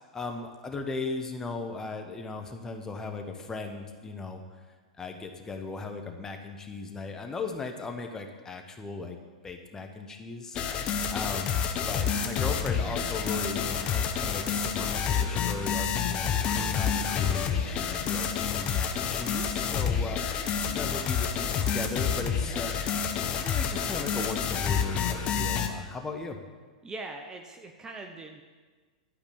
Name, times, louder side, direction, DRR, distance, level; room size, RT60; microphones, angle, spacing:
voice 1, 0.1-4.4 5.0-9.2 9.4-10.6 11.1-20.2 20.6-22.7 23.4-26.4, left 3 dB, 15° left, 4 dB, 1.5 m, -37 dB
sound 1, 10.6-25.7, left 7 dB, 35° left, 1.1 m, -29 dB
voice 2, 26.8-28.4, right 2 dB, 20° right, 4 dB, 1.0 m, -41 dB
12.0 x 5.2 x 8.7 m, 1.4 s
hypercardioid pair, 105°, 4 cm